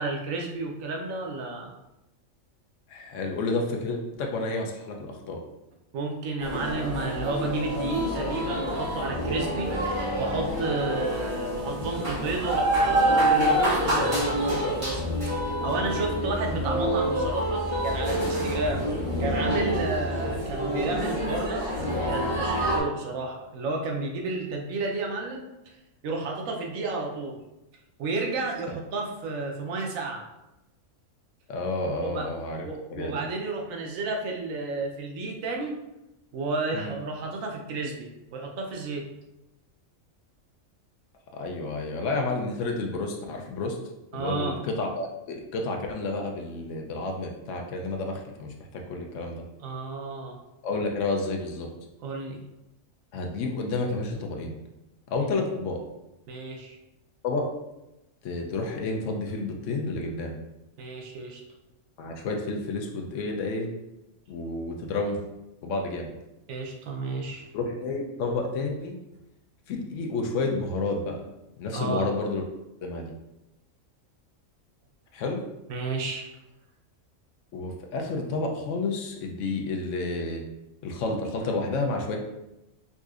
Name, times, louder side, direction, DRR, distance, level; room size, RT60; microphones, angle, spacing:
voice 1, 0.0-1.7 5.9-9.7 10.2-18.9 19.2-21.6 22.1-25.5 26.0-27.4 28.0-30.3 32.0-32.3 32.6-35.8 36.3-39.1 44.1-44.6 49.6-50.4 52.0-52.4 55.3-55.4 56.3-56.8 60.8-61.4 66.5-67.5 71.7-72.1 75.7-76.3, right 3 dB, 85° right, 1 dB, 1.0 m, -32 dB
voice 2, 2.9-5.4 31.5-33.2 36.7-36.9 41.3-43.8 44.1-49.4 50.6-51.7 53.1-54.5 55.1-55.8 57.2-57.5 58.2-60.3 62.0-63.7 64.3-65.2 65.6-66.1 67.5-69.0 69.7-71.2 71.6-72.4 72.8-73.1 75.1-75.4 77.5-80.4 80.8-82.2, left 3 dB, 70° left, 2 dB, 0.9 m, -30 dB
sound 1, 6.4-22.8, equal, 45° right, 1.5 m, -27 dB
4.0 x 2.6 x 2.4 m, 0.93 s
omnidirectional pair, 1.4 m